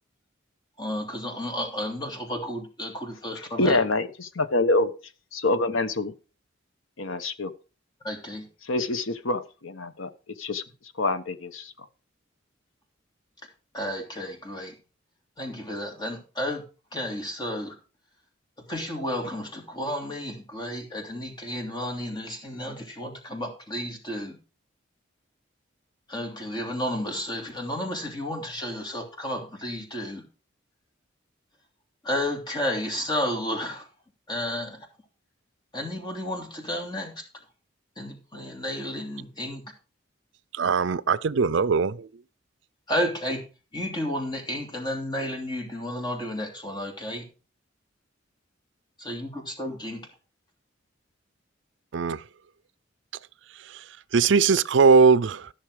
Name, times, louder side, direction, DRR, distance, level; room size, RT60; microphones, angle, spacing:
voice 1, 0.8-3.8 5.7-5.8 8.0-8.5 13.7-14.7 15.4-16.6 16.9-17.7 18.7-24.4 26.1-30.2 32.0-33.9 34.3-34.9 35.7-37.2 38.0-39.6 42.9-43.4 43.7-47.3 49.0-50.1, left 1 dB, 20° left, 2.9 m, -32 dB
voice 2, 3.6-4.9 5.3-6.1 7.0-7.5 8.7-10.1 10.4-10.6 11.0-11.7, left 2 dB, 85° left, 1.1 m, -26 dB
voice 3, 40.5-42.1 51.9-52.2 54.1-55.5, right 5 dB, 65° right, 0.5 m, -20 dB
14.0 x 6.5 x 4.9 m
head